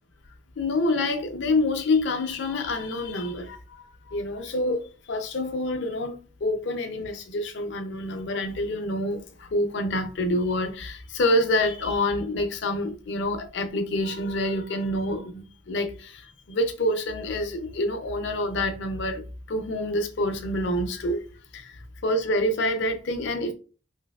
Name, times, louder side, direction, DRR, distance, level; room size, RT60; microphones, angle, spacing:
voice 1, 0.6-21.2 21.5-23.5, left 1 dB, 60° left, 0.5 m, -27 dB
3.2 x 2.7 x 2.3 m
head